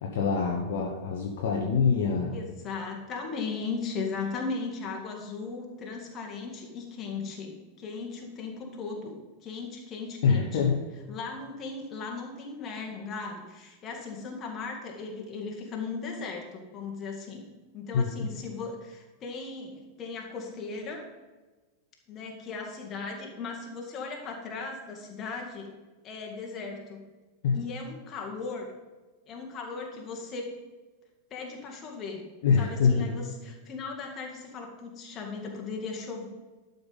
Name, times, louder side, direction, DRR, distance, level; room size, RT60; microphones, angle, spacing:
voice 1, 0.0-2.3 10.2-10.8 17.9-18.3 27.4-27.6 32.4-33.1, left 5 dB, 55° left, 0 dB, 1.2 m, -25 dB
voice 2, 2.3-10.7 11.1-17.5 17.7-21.0 22.1-25.7 26.0-27.0 27.5-28.7 29.3-30.5 31.3-32.3 32.6-36.3, left 4 dB, 30° left, 0 dB, 2.2 m, -37 dB
11.5 x 5.6 x 5.5 m, 1.2 s
figure-of-eight pair, 90°, 0 cm